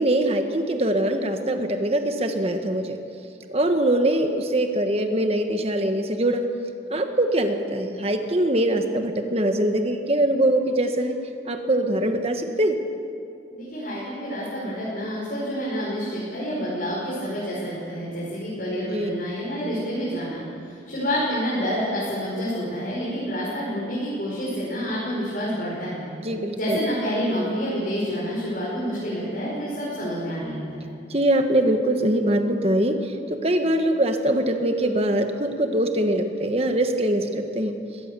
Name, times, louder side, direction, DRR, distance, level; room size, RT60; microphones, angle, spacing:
voice 1, 0.0-3.0 3.5-6.4 6.9-11.2 11.5-12.8 18.9-19.1 26.2-26.8 31.1-33.1 33.4-37.7, right 1 dB, 35° right, 6 dB, 1.5 m, -23 dB
voice 2, 13.5-26.0 26.5-30.9, equal, 50° left, -7 dB, 5.5 m, -28 dB
22.0 x 17.0 x 7.0 m, 2.5 s
head